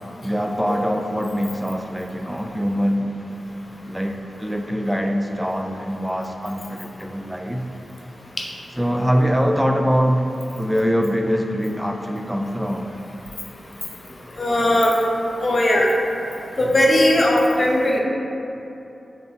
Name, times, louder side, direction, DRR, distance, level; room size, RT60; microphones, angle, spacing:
voice 1, 0.2-3.2 3.9-7.6 8.8-10.3 10.6-12.9, equal, 5° right, 4 dB, 0.3 m, -23 dB
voice 2, 14.4-15.0 15.4-15.9 16.6-18.0, left 1 dB, 40° left, -1 dB, 0.6 m, -18 dB
6.6 x 2.6 x 2.8 m, 2.9 s
wide cardioid pair, 80°, 0 cm